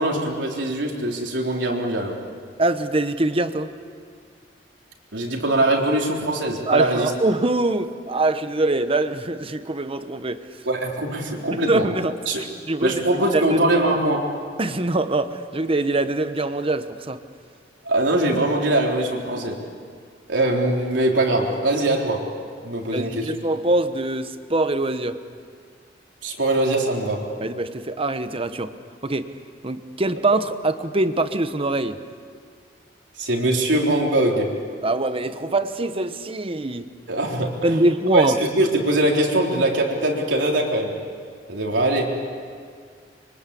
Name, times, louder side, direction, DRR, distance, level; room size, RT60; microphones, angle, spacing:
voice 1, 0.0-2.2 5.1-7.1 10.7-11.9 12.3-12.4 12.8-14.2 17.8-19.6 20.3-22.2 22.6-23.3 26.2-27.3 33.2-34.5 37.1-37.8 38.1-40.9 41.5-42.1, right 1 dB, 80° right, 0 dB, 3.8 m, -22 dB
voice 2, 2.6-3.7 6.7-10.4 11.5-13.6 14.6-17.2 22.9-25.2 27.4-28.7 29.0-29.3 29.6-32.0 34.8-36.9 37.6-38.4, right 2 dB, 30° right, 10 dB, 1.0 m, -23 dB
25.0 x 24.0 x 8.5 m, 2.1 s
head